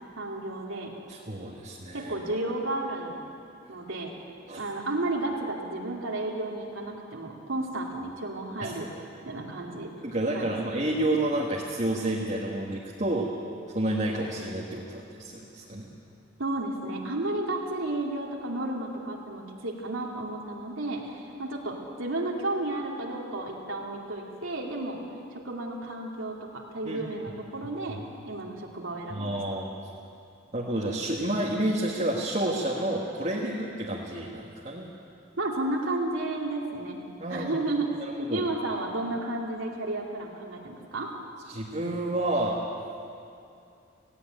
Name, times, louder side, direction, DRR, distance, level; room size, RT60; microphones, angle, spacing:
voice 1, 0.2-0.9 1.9-3.2 3.7-4.1 4.6-8.9 9.2-9.9 10.3-10.5 16.4-25.0 25.4-28.0 28.3-29.4 35.4-37.0 37.3-41.1, right 2 dB, 85° right, -1 dB, 2.6 m, -32 dB
voice 2, 1.1-2.1 4.5-4.6 8.6-8.7 10.0-13.3 13.7-15.9 26.8-27.0 27.6-28.0 29.1-29.7 30.5-34.9 37.2-37.5 38.0-38.5 41.5-42.6, right 1 dB, 35° right, -3 dB, 1.6 m, -30 dB
17.5 x 16.5 x 9.1 m, 2.6 s
head